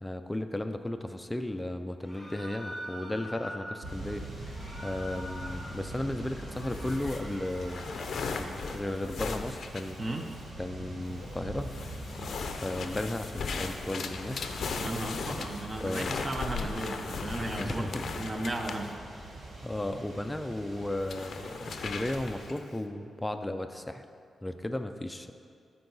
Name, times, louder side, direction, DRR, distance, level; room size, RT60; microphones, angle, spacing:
voice 1, 0.0-4.6 4.8-7.8 8.3-10.0 10.6-11.7 12.6-14.5 15.8-16.1 17.6-18.1 19.6-24.0 24.4-25.3, left 1 dB, 10° left, 8 dB, 0.4 m, -35 dB
sound 1, 2.0-3.7 4.4-5.7 6.1-8.5, equal, 10° right, 1.8 m, -44 dB
sound 2, 3.8-22.5, right 1 dB, 55° right, 1.7 m, -43 dB
sound 3, 6.6-10.5 11.0-11.4 11.7-18.9 21.0-22.7, left 5 dB, 65° left, 0.5 m, -37 dB
voice 2, 14.8-18.9, right 1 dB, 25° right, 4 dB, 0.7 m, -35 dB
12.5 x 4.7 x 4.0 m, 2.4 s
wide cardioid pair, 135°, 0 cm